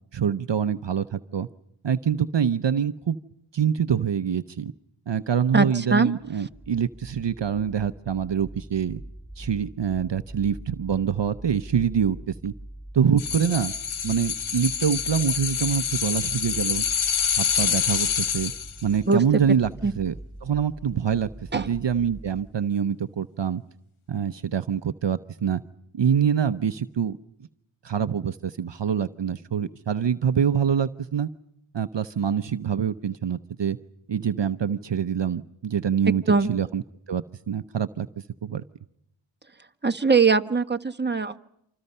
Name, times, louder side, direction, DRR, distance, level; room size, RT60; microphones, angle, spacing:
voice 1, 0.1-1.5 1.8-3.2 3.5-4.7 5.1-9.0 9.4-12.5 12.9-13.7 14.0-16.8 17.4-18.5 18.8-19.7 20.0-20.1 20.4-23.6 24.1-25.6 25.9-27.2 27.8-31.3 31.7-33.8 34.1-36.2 36.5-36.8 37.1-38.1 38.4-38.6, right 8 dB, 60° right, 12 dB, 0.8 m, -25 dB
voice 2, 5.5-6.1 19.1-19.2 19.8-19.9 21.5-21.7 36.3-36.5 39.8-41.4, right 4 dB, 20° right, 8 dB, 1.3 m, -21 dB
sound 1, 6.4-22.5, right 1 dB, ahead, 4.6 m, -43 dB
sound 2, 13.2-18.8 19.1-19.2, left 7 dB, 75° left, 1.1 m, -26 dB
28.0 x 26.0 x 5.5 m, 0.77 s
cardioid pair, 50°, 49 cm